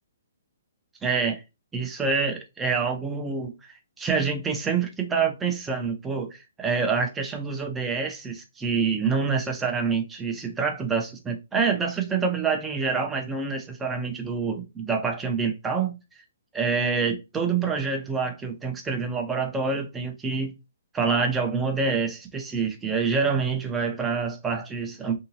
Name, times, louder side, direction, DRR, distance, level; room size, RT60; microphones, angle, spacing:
voice 1, 1.0-1.4 1.7-3.5 4.0-16.0 16.5-20.5 20.9-25.1, right 5 dB, 10° right, 0.7 m, -26 dB
3.7 x 2.7 x 2.8 m
figure-of-eight pair, 125°, 0 cm